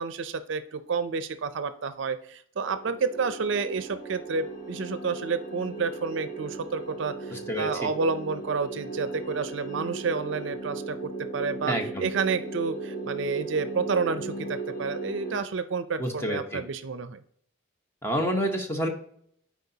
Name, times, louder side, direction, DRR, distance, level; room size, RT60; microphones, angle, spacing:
voice 1, 0.0-17.2, right 5 dB, 65° right, 12 dB, 0.5 m, -30 dB
sound 1, 2.6-15.4, right 3 dB, 40° left, 1.8 m, -37 dB
voice 2, 7.3-7.9 11.7-12.1 16.0-16.6 18.0-18.9, equal, 10° left, 3 dB, 0.9 m, -28 dB
12.0 x 4.7 x 2.8 m, 0.67 s
head